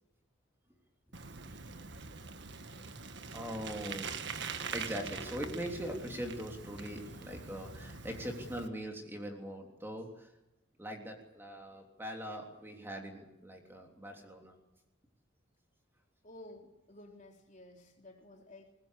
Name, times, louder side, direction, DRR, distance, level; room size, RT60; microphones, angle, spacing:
Bicycle, 1.1-8.7, right 5 dB, 60° right, 1.6 m, -44 dB
voice 1, 3.3-10.3 10.8-14.5, equal, 10° right, 2 dB, 3.3 m, -42 dB
voice 2, 16.2-18.7, left 1 dB, 40° left, 2 dB, 4.0 m, -53 dB
23.5 x 20.0 x 8.4 m, 0.94 s
head